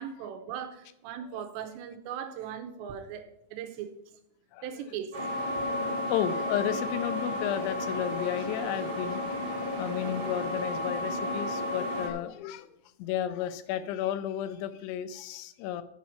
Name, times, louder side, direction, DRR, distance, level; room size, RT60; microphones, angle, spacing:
voice 1, 0.0-3.9 4.6-5.2, right 8 dB, 80° right, 8 dB, 3.0 m, -39 dB
sound 1, 5.1-12.1, left 1 dB, 35° right, 1.8 m, -32 dB
voice 2, 5.8-9.2 9.8-15.8, left 11 dB, 85° left, 13 dB, 3.1 m, -33 dB
8.4 x 7.7 x 5.7 m, 0.80 s
omnidirectional pair, 5.3 m